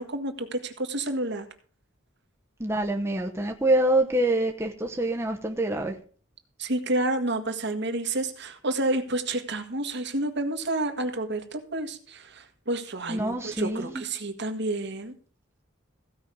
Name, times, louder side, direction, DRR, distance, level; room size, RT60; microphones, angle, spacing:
voice 1, 0.0-1.4 6.6-15.1, right 2 dB, 60° right, 1.7 m, -29 dB
voice 2, 2.6-5.9 13.1-14.0, right 1 dB, 15° right, 1.0 m, -26 dB
15.5 x 5.5 x 7.0 m
head